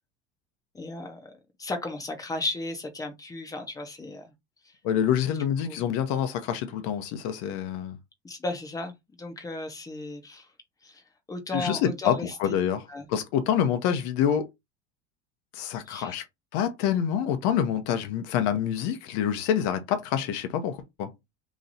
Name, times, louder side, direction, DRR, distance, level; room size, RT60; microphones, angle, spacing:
voice 1, 0.7-1.3 1.6-4.3 4.6-4.7 5.6-5.9 8.2-10.5 10.8-11.0 11.3-12.5 12.9-13.1 15.9-16.2, left 2 dB, 10° left, 0.8 m, -35 dB
voice 2, 4.8-8.0 11.5-12.8 13.1-14.4 15.5-16.2 16.5-21.1, left 9 dB, 60° left, 0.9 m, -26 dB
3.1 x 2.7 x 3.9 m
cardioid pair, 145°, 32 cm